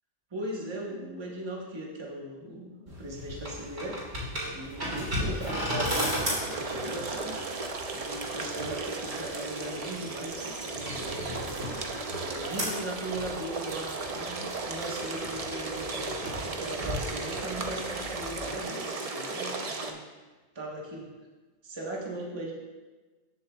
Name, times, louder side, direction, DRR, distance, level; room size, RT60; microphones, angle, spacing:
voice 1, 0.3-4.0 4.5-7.4 7.9-20.0 20.5-21.1 21.6-22.5, right 1 dB, 20° right, -3 dB, 1.2 m, -38 dB
sound 1, 2.9-18.6, equal, 65° right, 3.5 m, -36 dB
sound 2, 5.9-19.9, right 3 dB, 40° right, 0.6 m, -35 dB
14.5 x 6.8 x 2.3 m, 1.3 s
omnidirectional pair, 1.3 m